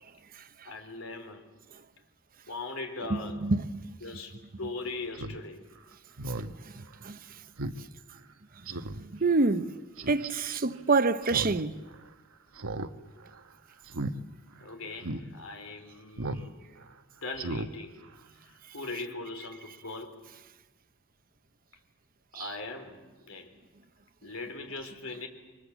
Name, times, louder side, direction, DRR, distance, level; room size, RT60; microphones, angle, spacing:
voice 1, 0.6-1.5 2.5-3.4 4.0-5.6 14.6-16.6 17.2-18.0 18.4-20.2 22.3-23.5 24.2-25.3, left 3 dB, 90° left, 3.8 m, -40 dB
voice 2, 3.1-3.8 7.0-7.2 9.2-9.7 10.1-11.8 22.3-22.4, right 3 dB, 45° right, 0.9 m, -26 dB
Speech synthesizer, 5.1-5.4 5.8-5.9 6.2-6.5 6.9-7.0 7.6-7.8 8.1-8.2 8.7-9.0 10.0-10.3 11.2-11.6 11.9-12.0 12.6-12.9 13.2-13.4 13.9-14.1 14.6-14.7 15.0-15.2 16.2-16.5 16.8-16.9 17.3-17.7 18.0-18.1, right 2 dB, 90° right, 1.2 m, -35 dB
29.5 x 24.0 x 7.4 m
head